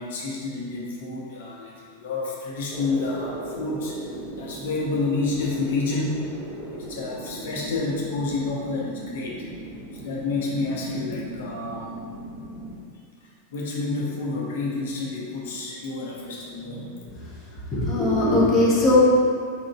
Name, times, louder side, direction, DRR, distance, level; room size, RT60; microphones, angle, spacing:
voice 1, 0.0-6.2 6.6-9.5 9.9-11.9 13.5-17.0, left 3 dB, 55° left, -3 dB, 0.8 m, -29 dB
sound 1, 2.7-12.8, right 1 dB, 40° right, 0.8 m, -38 dB
voice 2, 17.2-19.0, left 2 dB, 25° left, -7 dB, 1.2 m, -20 dB
4.8 x 3.8 x 2.3 m, 2.2 s
figure-of-eight pair, 90°, 0 cm